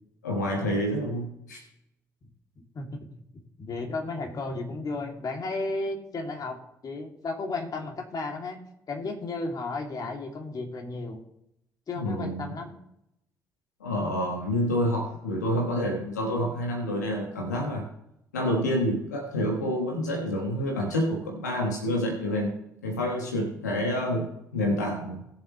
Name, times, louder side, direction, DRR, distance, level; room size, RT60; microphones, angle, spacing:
voice 1, 0.2-1.6 12.0-12.5 13.8-17.9 18.3-25.2, equal, 90° left, 1 dB, 1.3 m, -28 dB
voice 2, 2.7-3.1 3.6-6.6 6.8-8.6 8.9-11.2 11.9-12.7, left 3 dB, 45° left, 2 dB, 2.5 m, -33 dB
19.5 x 7.2 x 3.1 m, 0.80 s
hypercardioid pair, 45°, 9 cm